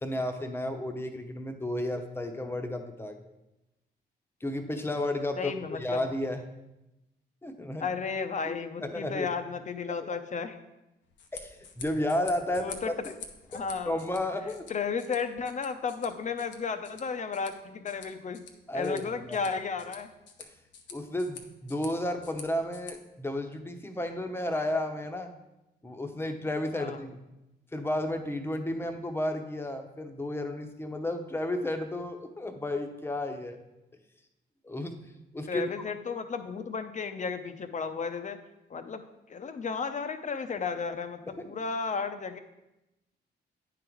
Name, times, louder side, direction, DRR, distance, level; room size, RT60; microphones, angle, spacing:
voice 1, 0.0-3.2 4.4-5.5 5.8-6.4 7.4-7.9 8.5-9.3 11.3-13.1 13.5-14.7 18.7-19.4 20.4-20.5 20.9-25.3 25.8-27.2 27.7-33.6 34.6-35.1 35.3-35.6, left 1 dB, 15° left, 5 dB, 0.8 m, -32 dB
voice 2, 5.4-6.0 7.8-10.6 12.5-12.9 13.5-14.0 14.7-18.4 18.7-20.1 26.7-27.0 35.5-38.4 38.7-42.4, left 5 dB, 40° left, 9 dB, 0.7 m, -33 dB
sound 1, 11.0-22.9, left 6 dB, 90° left, 0.8 m, -49 dB
9.2 x 3.9 x 4.6 m, 0.95 s
cardioid pair, 80°, 18 cm